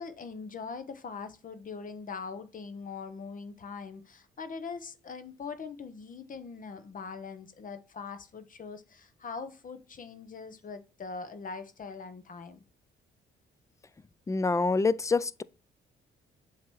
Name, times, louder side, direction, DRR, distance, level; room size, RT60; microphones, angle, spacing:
voice 1, 0.0-12.6, left 5 dB, 45° left, 0.9 m, -42 dB
voice 2, 14.3-15.4, left 4 dB, 15° left, 0.3 m, -26 dB
7.3 x 2.9 x 4.6 m
cardioid pair, 90°, 20 cm